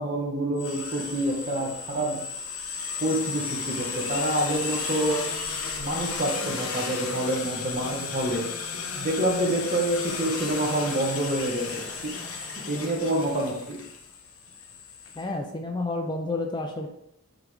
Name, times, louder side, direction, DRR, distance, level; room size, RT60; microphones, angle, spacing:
voice 1, 0.0-2.2 3.0-5.2 5.8-8.5 8.9-12.1 12.5-13.8, right 1 dB, 35° right, -1 dB, 1.4 m, -27 dB
sound 1, 0.6-15.2, left 5 dB, 80° left, 1.1 m, -34 dB
voice 2, 15.2-16.9, left 2 dB, 20° left, 3 dB, 0.5 m, -30 dB
8.8 x 3.9 x 3.4 m, 0.78 s
head